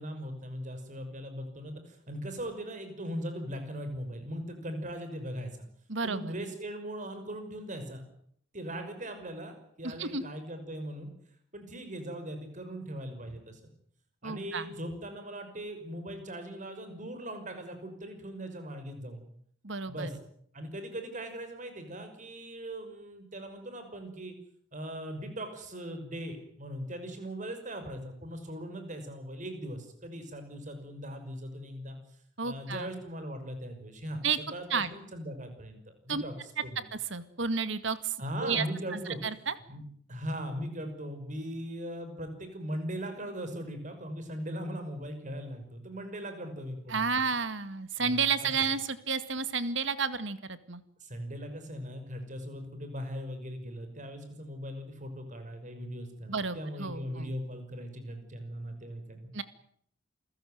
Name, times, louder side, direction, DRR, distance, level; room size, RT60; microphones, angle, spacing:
voice 1, 0.0-5.7 6.0-8.0 8.5-11.1 11.5-13.6 14.2-19.2 19.9-20.1 20.5-24.3 24.7-32.0 32.4-34.2 34.5-36.3 36.6-36.8 38.2-39.2 39.7-39.8 40.1-47.3 48.0-48.5 51.0-59.3, equal, 40° right, 8 dB, 5.8 m, -39 dB
voice 2, 5.9-6.3 9.8-10.2 14.2-14.7 19.6-20.1 32.4-32.9 34.2-34.4 34.7-34.9 36.1-36.2 37.0-38.7 38.9-39.5 46.9-50.8 56.3-57.3 59.3-59.4, right 5 dB, 65° right, 13 dB, 2.0 m, -31 dB
28.0 x 16.0 x 9.4 m, 0.65 s
head